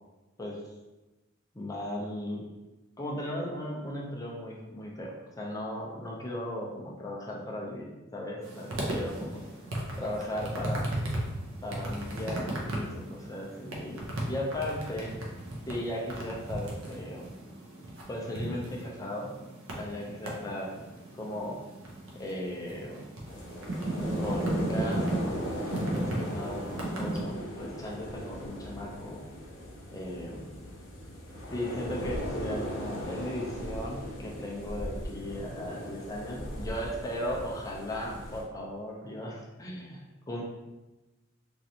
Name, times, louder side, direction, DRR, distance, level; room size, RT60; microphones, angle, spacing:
voice 1, 1.5-2.4 3.0-9.4 10.0-10.9 11.6-15.1 15.7-17.3 18.1-19.3 19.8-20.8 21.2-21.6 22.1-23.0 24.2-25.6 25.9-29.2 29.9-30.5 31.5-40.4, left 1 dB, 15° left, -2 dB, 0.5 m, -37 dB
sound 1, 8.4-27.2, right 1 dB, 80° right, 0.7 m, -36 dB
sound 2, 23.2-38.4, equal, 70° left, 0.7 m, -38 dB
3.1 x 2.5 x 2.7 m, 1.1 s
head